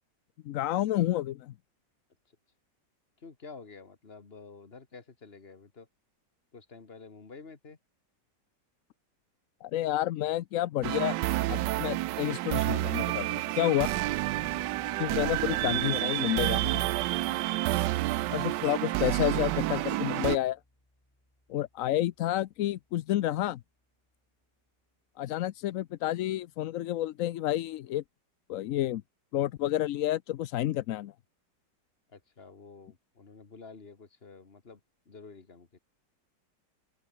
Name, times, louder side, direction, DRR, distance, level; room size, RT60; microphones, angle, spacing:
voice 1, 0.4-1.5 9.6-11.1 11.5-13.9 15.0-16.9 18.3-20.6 21.5-23.6 25.2-28.0 28.5-29.0 29.3-31.1, left 13 dB, 70° left, 0.8 m, -30 dB
voice 2, 3.2-5.9 6.5-7.8 14.3-14.4 14.8-15.0 32.1-34.8 35.1-35.8, left 4 dB, 35° left, 2.1 m, -50 dB
sound 1, 10.8-20.4, right 17 dB, 80° right, 1.2 m, -29 dB
sound 2, 14.4-23.3, left 1 dB, 10° left, 3.4 m, -58 dB
open air
omnidirectional pair, 1.9 m